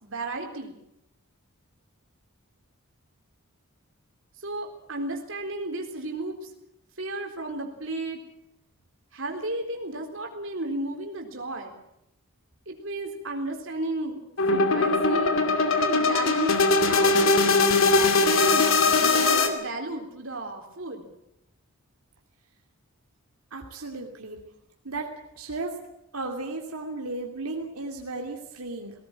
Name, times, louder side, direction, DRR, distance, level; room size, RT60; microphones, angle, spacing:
voice 1, 0.0-0.8 4.4-6.4 7.0-8.2 9.1-11.8 12.7-14.2 14.5-15.3 15.7-17.2 17.9-18.7 19.0-21.1, right 2 dB, 60° right, 2 dB, 4.0 m, -33 dB
sound 1, 14.4-19.5, left 3 dB, 65° left, 2.5 m, -21 dB
voice 2, 23.5-24.4 24.8-25.1 25.4-25.7 26.1-28.9, right 2 dB, 85° right, 1 dB, 2.6 m, -34 dB
19.0 x 18.0 x 9.1 m, 0.82 s
head